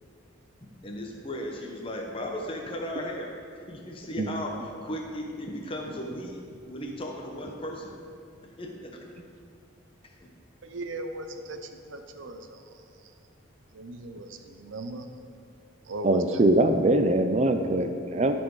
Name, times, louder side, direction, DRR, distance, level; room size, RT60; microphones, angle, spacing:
voice 1, 0.6-8.0 8.4-9.1 10.0-10.3, left 1 dB, 25° left, 1 dB, 0.9 m, -36 dB
voice 2, 10.6-13.1 13.7-15.1 15.8-16.4, right 2 dB, 70° right, 7 dB, 0.7 m, -38 dB
voice 3, 16.0-18.3, right 1 dB, 35° right, 7 dB, 0.4 m, -22 dB
12.5 x 4.4 x 4.7 m, 2.4 s
head